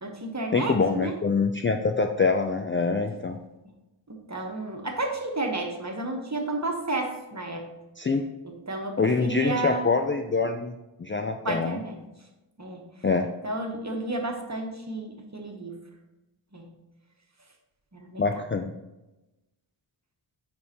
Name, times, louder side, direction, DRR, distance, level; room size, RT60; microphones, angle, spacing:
voice 1, 0.0-1.1 4.1-7.7 8.4-9.9 11.4-12.0 12.6-12.8 13.4-15.8 16.5-16.7 17.9-18.4, right 2 dB, 35° right, 2 dB, 1.1 m, -32 dB
voice 2, 0.5-3.4 8.0-8.3 9.0-10.7 11.0-11.8 13.0-13.3 18.2-18.7, left 4 dB, 25° left, 4 dB, 0.4 m, -25 dB
9.4 x 3.6 x 2.9 m, 0.99 s
cardioid pair, 50°, 49 cm